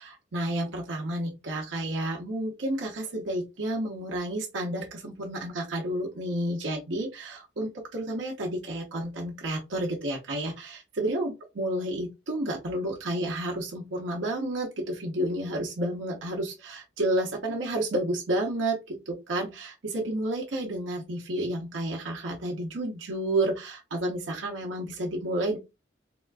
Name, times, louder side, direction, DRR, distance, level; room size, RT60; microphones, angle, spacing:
voice 1, 0.0-25.6, right 1 dB, 90° right, -1 dB, 0.8 m, -31 dB
3.7 x 2.3 x 2.4 m, 0.24 s
head